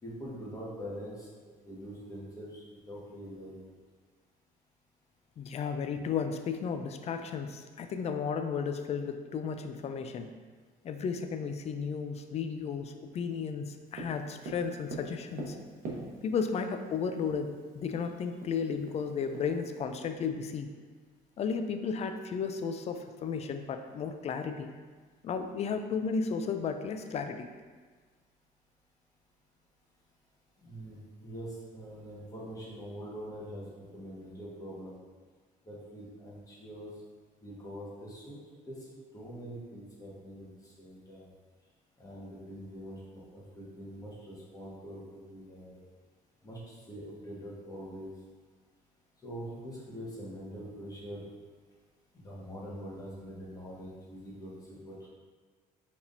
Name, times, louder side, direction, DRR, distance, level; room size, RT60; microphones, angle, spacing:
voice 1, 0.0-3.7 30.6-35.0 35.6-36.9 37.4-38.4 38.7-38.8 39.1-41.3 42.0-45.8 46.4-48.1 49.2-51.3 52.1-55.1, equal, 20° left, -7 dB, 1.5 m, -44 dB
voice 2, 5.4-10.3 10.8-15.6 16.2-20.7 21.4-24.7 25.2-27.5, left 6 dB, 40° left, 7 dB, 0.4 m, -34 dB
Tap, 14.0-16.5 17.5-17.6 17.9-18.0 18.4-19.8, right 2 dB, 55° right, 1.0 m, -42 dB
4.8 x 3.5 x 2.6 m, 1.5 s
cardioid pair, 110°, 17 cm